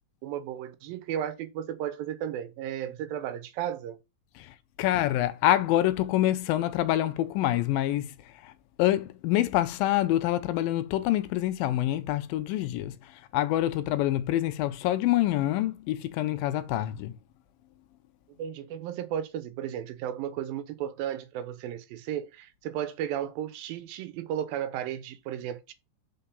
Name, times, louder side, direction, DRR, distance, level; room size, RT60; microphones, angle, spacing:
voice 1, 0.2-4.0 18.4-25.7, right 10 dB, 85° right, 2.6 m, -34 dB
voice 2, 4.4-8.5 8.8-17.1, left 14 dB, 85° left, 2.5 m, -26 dB
5.7 x 4.7 x 5.3 m
omnidirectional pair, 4.0 m